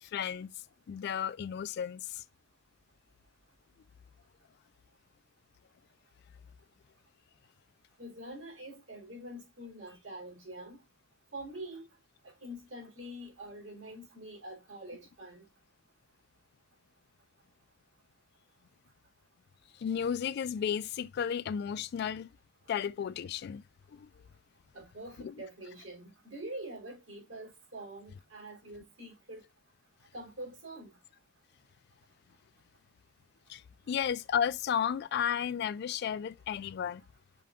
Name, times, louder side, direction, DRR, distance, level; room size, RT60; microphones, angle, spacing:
voice 1, 0.0-0.5 0.9-2.2 19.8-22.3 22.7-23.6 23.9-24.1 25.2-25.3 33.5-33.6 33.9-37.0, left 8 dB, 55° left, 0.3 m, -33 dB
voice 2, 8.0-10.8 11.3-11.9 12.2-15.5 24.7-29.4 30.1-30.9, right 1 dB, 75° right, 2.7 m, -45 dB
5.4 x 2.3 x 3.6 m
head